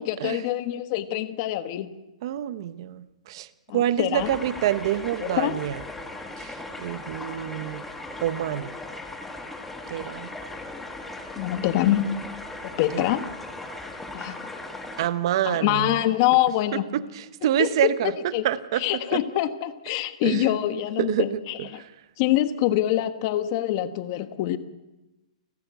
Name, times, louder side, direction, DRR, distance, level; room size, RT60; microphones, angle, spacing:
voice 1, 0.0-1.9 3.7-4.4 5.2-5.6 11.4-12.1 12.6-13.2 14.1-14.3 15.4-16.9 17.6-17.9 18.3-18.4 18.8-21.8 22.2-24.6, left 13 dB, 35° left, 10 dB, 1.3 m, -25 dB
voice 2, 2.2-3.5 3.7-5.8 6.4-7.8 8.2-8.7 9.9-10.3 12.9-13.1 15.0-16.0 16.9-18.8 19.1-19.2 20.2-20.5 21.0-21.2 21.8-21.9, right 11 dB, 45° right, 13 dB, 1.0 m, -27 dB
sound 1, 4.2-15.1, left 2 dB, 5° left, 1.6 m, -38 dB
29.5 x 12.0 x 8.2 m, 1.0 s
hypercardioid pair, 165°, 4 cm